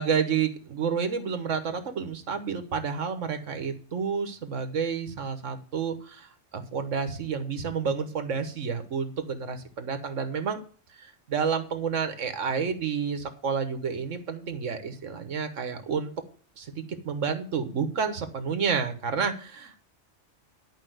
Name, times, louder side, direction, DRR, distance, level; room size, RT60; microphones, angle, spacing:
voice 1, 0.0-10.6 10.9-16.1 16.6-19.8, right 6 dB, 85° right, 8 dB, 1.5 m, -30 dB
11.0 x 5.0 x 7.8 m, 0.42 s
omnidirectional pair, 1.3 m